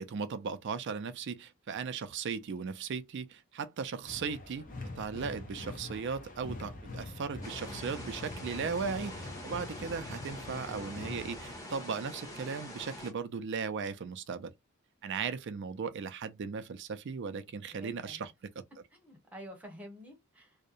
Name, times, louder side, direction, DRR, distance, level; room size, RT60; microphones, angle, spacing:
voice 1, 0.0-4.7 5.0-14.5 15.0-18.6, right 5 dB, 55° right, 0.4 m, -37 dB
sound 1, 4.1-11.6, left 2 dB, 40° left, 0.6 m, -44 dB
sound 2, 7.4-13.1, left 1 dB, 20° left, 1.1 m, -45 dB
voice 2, 17.7-18.3 18.9-20.6, equal, 5° right, 0.9 m, -49 dB
2.7 x 2.1 x 2.4 m
head